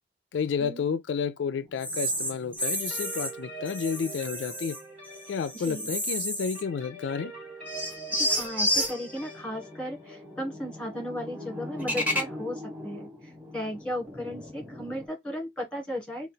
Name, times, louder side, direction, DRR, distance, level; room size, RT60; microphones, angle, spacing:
voice 1, 0.3-4.8 5.3-7.3, left 6 dB, 85° left, 0.4 m, -31 dB
sound 1, 1.8-3.3 3.7-4.8 5.2-6.8 7.0-7.1 7.7-15.1, equal, 10° right, 1.2 m, -33 dB
sound 2, 2.6-12.2, right 2 dB, 35° right, 2.7 m, -45 dB
voice 2, 5.5-5.9 8.1-16.3, equal, 5° left, 1.6 m, -36 dB
3.9 x 2.3 x 3.9 m
head